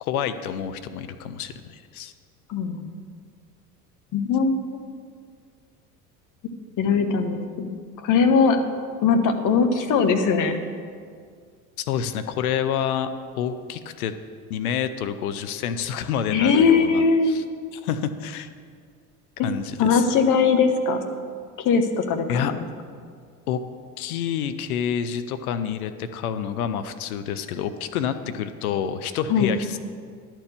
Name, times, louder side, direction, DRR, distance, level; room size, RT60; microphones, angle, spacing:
voice 1, 0.0-2.1 11.8-14.1 14.5-17.4 17.7-18.5 19.4-20.1 22.3-22.5 23.5-23.6 24.0-29.8, left 8 dB, 65° left, 10 dB, 0.7 m, -28 dB
voice 2, 2.5-2.9 4.1-4.6 6.8-7.7 8.0-8.6 9.0-10.6 16.3-17.4 19.8-21.0 21.6-22.6 29.3-29.5, left 5 dB, 40° left, 6 dB, 1.1 m, -20 dB
11.5 x 4.5 x 8.2 m, 2.1 s
figure-of-eight pair, 70°, 46 cm